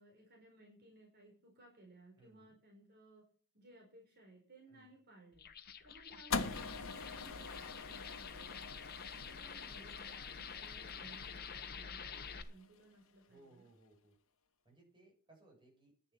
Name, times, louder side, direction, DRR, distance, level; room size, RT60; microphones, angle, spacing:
voice 1, 0.0-3.2 3.5-13.7, right 1 dB, 50° right, -1 dB, 4.7 m, -61 dB
voice 2, 2.2-2.5 4.7-4.9 13.3-14.2 14.6-16.1, right 2 dB, 25° right, 0 dB, 6.9 m, -64 dB
sound 1, 5.3-12.4, left 6 dB, 45° left, 1.2 m, -48 dB
sound 2, 6.3-12.6, left 4 dB, 70° left, 1.4 m, -44 dB
11.0 x 11.0 x 5.8 m, 0.44 s
head